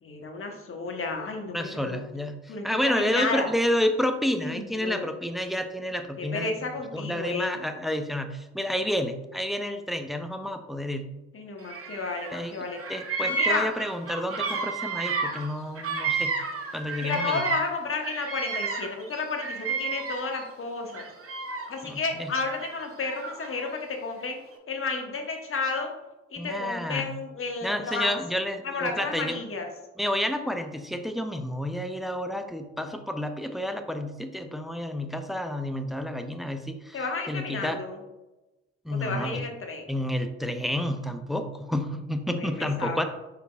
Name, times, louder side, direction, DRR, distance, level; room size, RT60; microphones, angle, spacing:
voice 1, 0.0-2.0 2.5-3.5 4.4-5.1 6.2-7.5 11.3-12.8 13.2-13.7 17.0-21.0 21.7-24.4 24.7-25.9 26.3-28.2 28.6-29.7 36.9-38.0 39.0-39.9 42.3-43.0, left 4 dB, 35° left, 3 dB, 1.0 m, -32 dB
voice 2, 1.5-11.1 12.3-12.5 12.9-16.4 16.7-17.4 21.8-22.3 26.4-27.1 27.6-29.4 30.0-37.8 38.8-39.5 39.9-43.0, left 1 dB, ahead, 7 dB, 0.4 m, -30 dB
Bird vocalization bird call bird song, 11.6-12.4 12.7-17.8 18.0-20.4 20.9-21.9 22.6-23.7, right 4 dB, 40° right, 0.9 m, -31 dB
5.0 x 4.5 x 2.3 m, 1.0 s
hypercardioid pair, 50°, 36 cm